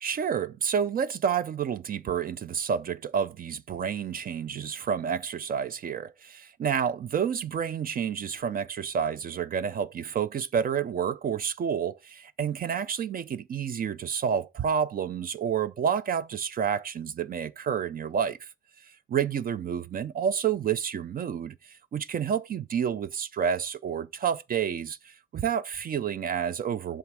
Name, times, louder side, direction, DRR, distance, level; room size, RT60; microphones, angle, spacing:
voice 1, 0.0-18.5 19.1-27.0, right 7 dB, 45° right, 0.5 m, -29 dB
7.3 x 3.5 x 6.1 m
cardioid pair, 90°, 20 cm